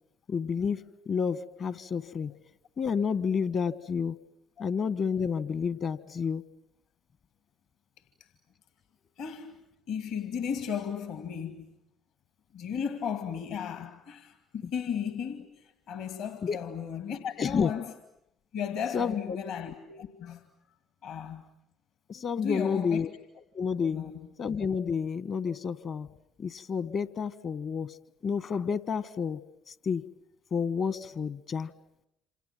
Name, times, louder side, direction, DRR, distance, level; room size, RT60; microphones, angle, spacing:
voice 1, 0.3-2.3 2.8-4.2 4.6-6.4 16.4-16.6 17.4-17.7 18.9-19.4 22.1-23.1 23.5-24.0 24.4-26.1 26.4-27.9 28.2-29.4 29.7-30.0 30.5-31.7, left 6 dB, 50° left, 1.3 m, -30 dB
voice 2, 9.2-11.7 12.5-17.9 18.5-20.4 21.0-21.4 22.4-23.0 23.9-24.3, left 7 dB, 65° left, 2.1 m, -35 dB
27.5 x 27.0 x 7.5 m
figure-of-eight pair, 50°, 0 cm